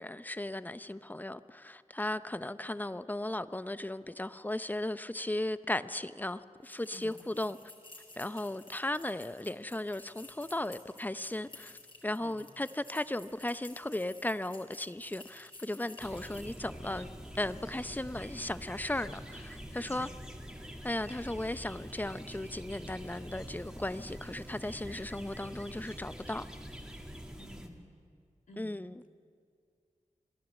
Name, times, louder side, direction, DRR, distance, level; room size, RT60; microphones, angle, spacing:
voice 1, 0.0-7.6 8.2-17.1 17.3-20.1 20.8-26.5 28.6-29.0, left 1 dB, 15° left, 0.7 m, -36 dB
sound 1, 6.6-16.7, left 2 dB, 40° left, 5.2 m, -54 dB
voice 2, 6.9-7.2 12.2-12.5 16.2-16.5 19.9-20.2 27.3-27.9 28.5-28.9, left 1 dB, 75° left, 2.2 m, -52 dB
sound 2, 16.0-27.7, equal, 5° right, 2.2 m, -45 dB
28.0 x 11.0 x 8.2 m
cardioid pair, 45°, 13 cm